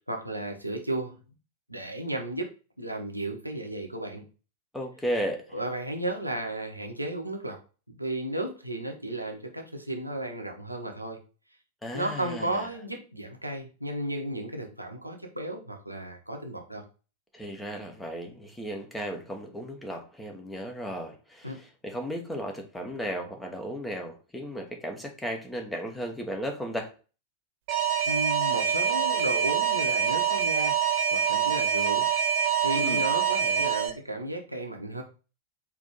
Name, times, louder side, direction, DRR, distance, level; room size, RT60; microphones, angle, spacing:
voice 1, 0.1-1.2 1.7-4.2 5.5-7.6 7.9-11.2 11.9-16.8 21.4-21.6 28.1-30.8 31.1-32.1 32.6-35.0, right 1 dB, 85° right, 0.9 m, -34 dB
voice 2, 4.7-5.6 11.8-12.7 17.3-26.9 32.7-33.0, equal, 5° left, 1.0 m, -35 dB
Alarm, 27.7-33.9, right 7 dB, 45° right, 1.0 m, -25 dB
4.7 x 2.9 x 3.9 m
figure-of-eight pair, 90°, 0 cm